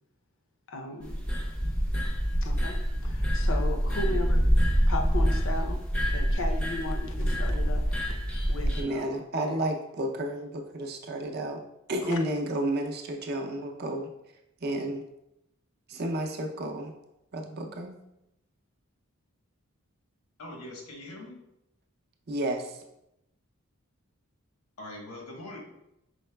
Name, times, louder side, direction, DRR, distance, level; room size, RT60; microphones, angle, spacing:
voice 1, 0.7-1.2 2.4-4.5 4.9-5.8 6.1-8.0 8.5-9.0 9.5-9.6 12.1-12.2, left 2 dB, 60° left, 4 dB, 0.5 m, -36 dB
sound 1, 1.0-8.8, equal, 5° left, 0.5 m, -26 dB
voice 2, 4.1-4.4 8.8-11.6 11.9-14.1 14.6-15.0 15.9-16.9 17.3-18.0 22.3-22.8, right 1 dB, 45° right, 3 dB, 0.5 m, -31 dB
voice 3, 20.4-21.4 24.8-25.6, left 1 dB, 85° left, 0 dB, 1.1 m, -42 dB
5.4 x 3.8 x 2.2 m, 0.85 s
head